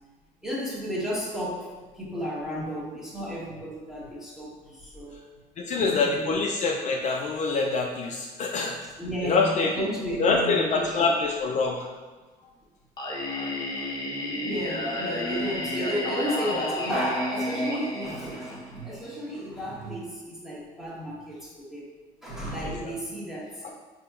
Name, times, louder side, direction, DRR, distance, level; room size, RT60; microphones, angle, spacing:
voice 1, 0.4-5.2 5.6-6.4 9.0-11.1 12.4-12.5 14.4-21.9 22.2-23.7, equal, ahead, -6 dB, 1.2 m, -33 dB
voice 2, 5.6-8.8 9.2-9.9 10.2-11.9 22.6-22.9 23.6-23.7, left 4 dB, 45° left, 1 dB, 0.4 m, -25 dB
Singing, 13.0-18.9, left 1 dB, 25° left, 0.8 m, -31 dB
4.9 x 2.9 x 2.4 m, 1.3 s
cardioid pair, 110°, 17 cm